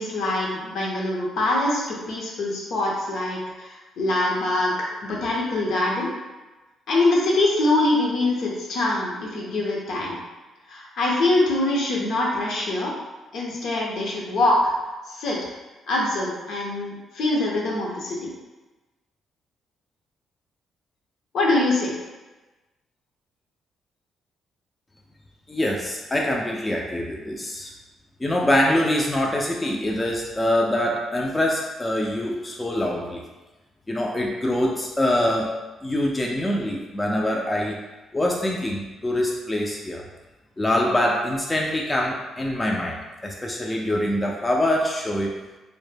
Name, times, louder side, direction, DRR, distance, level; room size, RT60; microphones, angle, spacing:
voice 1, 0.0-4.7 5.0-6.1 6.9-10.2 10.7-13.0 13.3-14.6 15.1-15.4 15.9-18.3 21.3-21.9, left 2 dB, 70° left, -3 dB, 0.6 m, -24 dB
voice 2, 25.5-27.7 28.2-33.2 33.9-35.5 35.8-37.8 38.1-40.0 40.6-43.0 43.2-45.3, left 1 dB, 15° left, -1 dB, 0.3 m, -24 dB
2.1 x 2.0 x 3.2 m, 1.2 s
cardioid pair, 90°, 0 cm